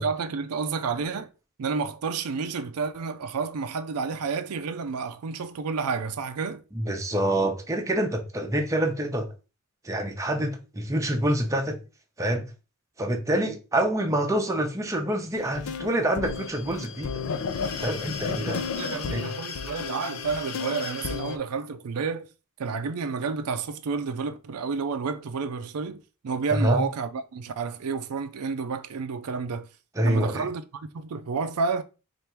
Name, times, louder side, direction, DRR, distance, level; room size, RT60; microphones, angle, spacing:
voice 1, 0.0-1.3 1.6-6.6 13.3-13.5 17.7-17.8 18.3-22.3 22.6-29.7 30.0-31.8, right 5 dB, 90° right, 0.5 m, -30 dB
voice 2, 6.7-9.3 9.8-11.8 12.2-12.5 13.0-17.2 17.8-18.6 19.1-19.3 26.5-26.8 30.0-30.5, right 1 dB, 15° right, 0.6 m, -26 dB
sound 1, 15.4-21.4, left 5 dB, 70° left, 0.5 m, -33 dB
3.3 x 2.5 x 4.4 m
head